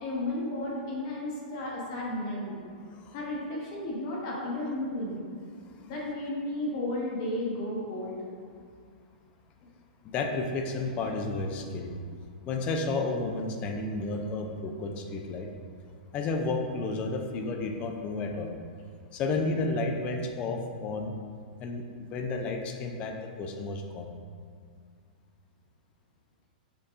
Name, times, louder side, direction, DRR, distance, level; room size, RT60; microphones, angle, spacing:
voice 1, 0.0-2.6 3.1-5.3 5.9-8.2, left 1 dB, 40° left, -4 dB, 0.9 m, -33 dB
voice 2, 10.1-11.9 12.5-15.5 16.1-18.5 19.1-21.1 21.6-24.1, left 3 dB, 25° left, 3 dB, 0.3 m, -32 dB
6.5 x 2.3 x 2.4 m, 2.1 s
hypercardioid pair, 155°, 5 cm